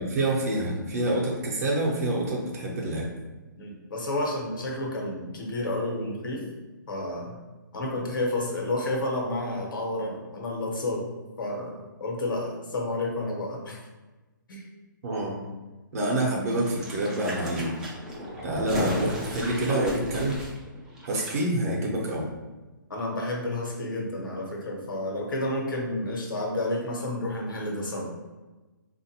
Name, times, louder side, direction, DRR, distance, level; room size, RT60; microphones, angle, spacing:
voice 1, 0.0-3.1 15.0-15.4 15.9-17.8 18.4-20.4 21.1-22.3, right 1 dB, 45° right, -3 dB, 0.8 m, -27 dB
voice 2, 3.6-6.4 6.9-7.4 7.7-11.1 11.4-13.8 14.5-14.6 22.9-28.1, left 1 dB, 70° left, -1 dB, 1.1 m, -30 dB
sound 1, 16.5-21.3 21.6-21.7, equal, 5° right, 0.3 m, -34 dB
3.6 x 2.5 x 2.8 m, 1.2 s
hypercardioid pair, 155°, 11 cm